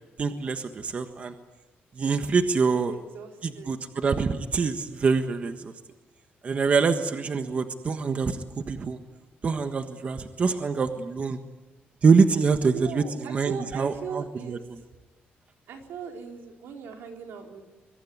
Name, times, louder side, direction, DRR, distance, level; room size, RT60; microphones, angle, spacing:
voice 1, 0.2-1.3 2.0-2.9 3.4-5.7 6.4-9.0 9.4-11.4 12.0-13.0 13.3-14.6, right 5 dB, 35° right, 7 dB, 1.4 m, -25 dB
voice 2, 2.7-3.8 12.7-14.8 15.7-17.6, right 6 dB, 85° right, 3 dB, 4.4 m, -39 dB
25.0 x 23.0 x 9.6 m, 1.2 s
cardioid pair, 140°, 4 cm